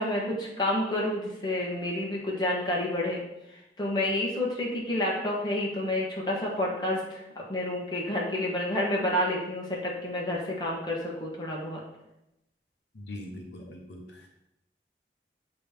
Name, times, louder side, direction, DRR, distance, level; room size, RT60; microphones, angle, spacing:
voice 1, 0.0-3.2 3.8-11.8, left 1 dB, 25° left, -3 dB, 1.4 m, -29 dB
voice 2, 12.9-14.3, left 1 dB, 90° left, 2 dB, 1.0 m, -42 dB
7.2 x 3.2 x 4.9 m, 0.88 s
head